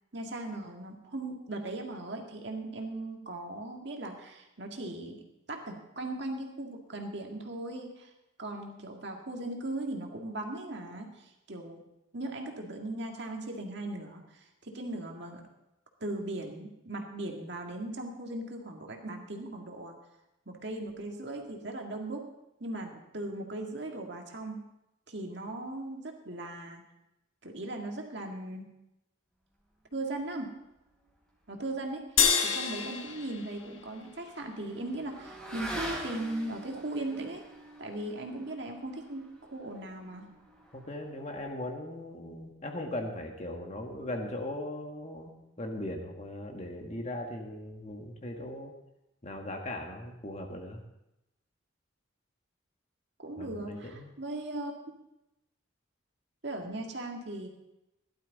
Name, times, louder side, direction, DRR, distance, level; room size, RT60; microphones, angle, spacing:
voice 1, 0.1-8.1 8.4-11.8 12.1-15.5 16.0-20.0 20.5-22.3 22.6-24.7 25.1-26.8 27.4-28.7 29.9-30.6 31.5-37.4 37.8-40.4 53.2-54.7 56.4-57.5, right 2 dB, 55° right, 2 dB, 2.0 m, -38 dB
sound 1, 32.2-34.8, left 6 dB, 75° left, 1.4 m, -29 dB
Motorcycle / Accelerating revving vroom, 32.8-41.5, right 1 dB, 5° left, 3.3 m, -45 dB
voice 2, 40.7-48.7 49.2-50.8 53.4-54.1, left 1 dB, 35° left, 2 dB, 1.5 m, -39 dB
16.0 x 12.0 x 4.1 m, 0.90 s
head